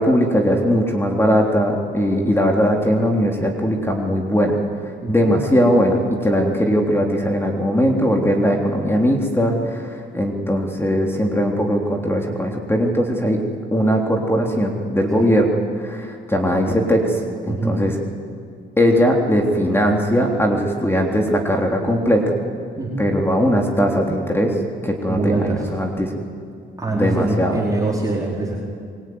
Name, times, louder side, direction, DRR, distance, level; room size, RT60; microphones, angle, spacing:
voice 1, 0.0-4.5 5.1-13.4 13.7-17.9 18.8-22.4 23.0-24.6 24.8-25.4 25.7-26.2 26.9-27.6, equal, 10° left, 1 dB, 3.6 m, -19 dB
voice 2, 5.0-5.3 15.1-15.2 17.5-17.8 22.7-23.1 25.1-25.7 26.8-28.6, right 2 dB, 15° right, -3 dB, 4.7 m, -23 dB
25.0 x 23.5 x 9.7 m, 2.2 s
cardioid pair, 90°, 20 cm